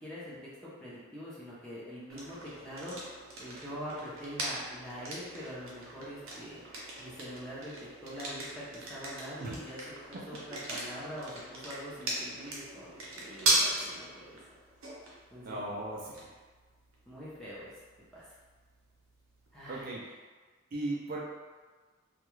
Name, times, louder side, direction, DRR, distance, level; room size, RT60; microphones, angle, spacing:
voice 1, 0.0-3.0 3.4-6.6 7.0-7.7 8.0-9.8 10.1-14.4 15.3-15.6 17.1-17.7 18.1-18.2 19.5-20.0, equal, 5° left, -9 dB, 0.6 m, -44 dB
sound 1, 2.1-19.8, right 1 dB, 80° right, 0.7 m, -38 dB
voice 2, 15.4-16.3 19.7-20.1 20.7-21.2, right 2 dB, 45° right, -4 dB, 0.3 m, -37 dB
2.3 x 2.3 x 3.0 m, 1.4 s
head